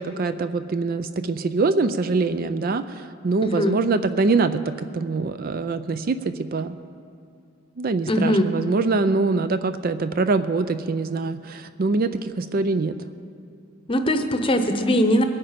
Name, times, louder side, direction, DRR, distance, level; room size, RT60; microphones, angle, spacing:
voice 1, 0.0-6.8 7.8-13.0, right 3 dB, 45° right, 11 dB, 0.4 m, -24 dB
voice 2, 3.4-3.8 8.1-8.5 13.9-15.2, equal, 25° left, 7 dB, 0.8 m, -21 dB
22.5 x 8.8 x 5.1 m, 2.4 s
head